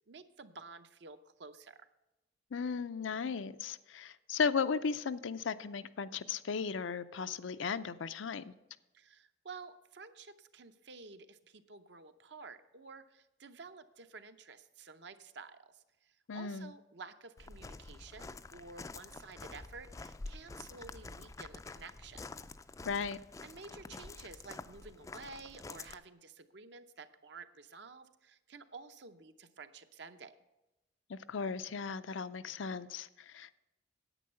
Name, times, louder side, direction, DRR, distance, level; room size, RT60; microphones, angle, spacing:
voice 1, 0.1-1.9 8.9-22.2 23.4-30.3, right 4 dB, 60° right, 10 dB, 0.7 m, -51 dB
voice 2, 2.5-8.5 16.3-16.7 22.8-23.2 31.1-33.6, left 5 dB, 80° left, 13 dB, 0.5 m, -36 dB
Walk footsteps, 17.4-25.9, left 3 dB, 15° left, 0.3 m, -48 dB
10.0 x 8.6 x 5.5 m, 0.99 s
head